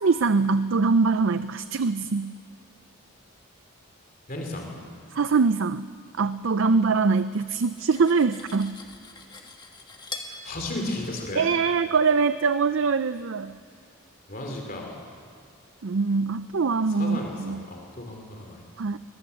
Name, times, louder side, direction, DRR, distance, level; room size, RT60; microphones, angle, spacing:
voice 1, 0.0-2.4 5.1-5.9 6.2-8.8 11.4-13.5 15.8-17.6 18.8-19.0, right 4 dB, 60° right, 13 dB, 0.5 m, -23 dB
voice 2, 4.3-4.8 10.3-11.4 14.3-15.0 16.9-18.6, left 2 dB, 40° left, 1 dB, 3.1 m, -34 dB
Cutlery silverware, 7.2-10.4, left 3 dB, 20° left, 1.5 m, -42 dB
22.0 x 20.5 x 7.0 m, 2.2 s
head